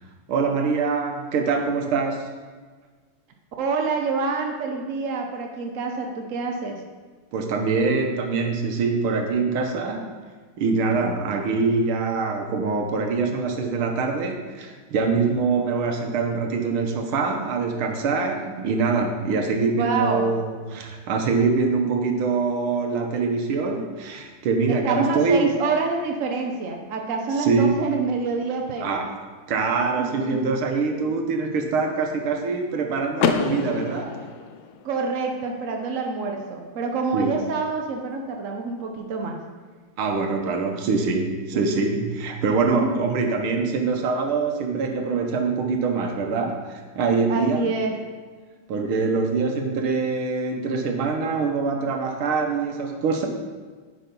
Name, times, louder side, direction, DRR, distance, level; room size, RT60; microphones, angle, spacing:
voice 1, 0.3-2.3 7.3-10.2 10.6-25.6 27.4-27.8 28.8-29.1 29.5-34.3 37.1-37.3 40.0-47.7 48.7-53.3, right 4 dB, 90° right, 4 dB, 1.9 m, -24 dB
voice 2, 3.6-6.8 19.7-20.3 24.7-29.1 30.0-30.5 34.8-39.4 41.5-41.6 42.7-43.0 47.3-47.9, right 4 dB, 60° right, 2 dB, 0.8 m, -27 dB
Car / Door, 33.2-35.1, left 7 dB, 70° left, 1.0 m, -27 dB
10.0 x 5.3 x 5.4 m, 1.5 s
omnidirectional pair, 2.3 m